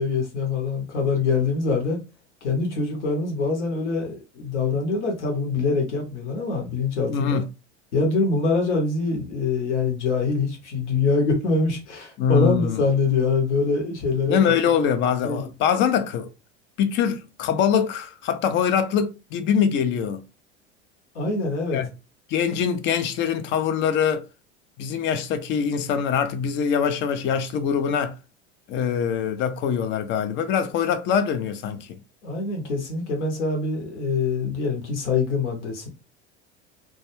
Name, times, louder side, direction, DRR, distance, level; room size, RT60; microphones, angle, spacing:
voice 1, 0.0-2.0 2.4-7.4 7.9-14.4 15.2-15.4 21.1-21.8 32.2-35.9, left 4 dB, 75° left, 0.9 m, -24 dB
voice 2, 7.1-7.5 12.2-12.8 14.3-16.3 16.8-20.2 21.7-21.9 22.3-24.3 24.8-28.2 28.7-32.0, left 7 dB, 35° left, 0.4 m, -23 dB
2.2 x 2.2 x 2.9 m
hypercardioid pair, 80°, 35 cm